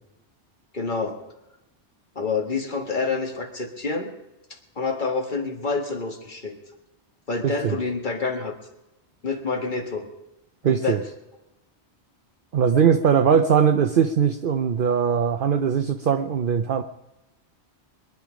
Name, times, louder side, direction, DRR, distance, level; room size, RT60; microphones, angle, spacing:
voice 1, 0.7-1.2 2.1-4.1 4.7-6.6 7.3-8.6 9.2-10.1 10.6-11.0, left 4 dB, 45° left, 5 dB, 1.8 m, -27 dB
voice 2, 7.4-7.8 10.6-11.0 12.5-16.8, right 7 dB, 55° right, 7 dB, 0.8 m, -20 dB
22.0 x 11.0 x 5.1 m, 0.95 s
omnidirectional pair, 1.1 m